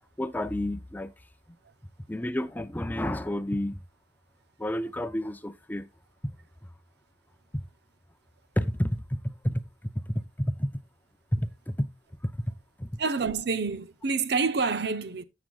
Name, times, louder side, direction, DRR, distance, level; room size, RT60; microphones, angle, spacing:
voice 1, 0.2-1.1 2.1-3.8 4.6-5.9 7.5-7.6 8.6-9.6 10.1-10.7 11.3-11.9 12.2-12.4 12.8-12.9, equal, 10° left, 0.5 m, -30 dB
voice 2, 13.0-15.2, right 4 dB, 65° right, 0.8 m, -27 dB
13.0 x 7.7 x 2.4 m
head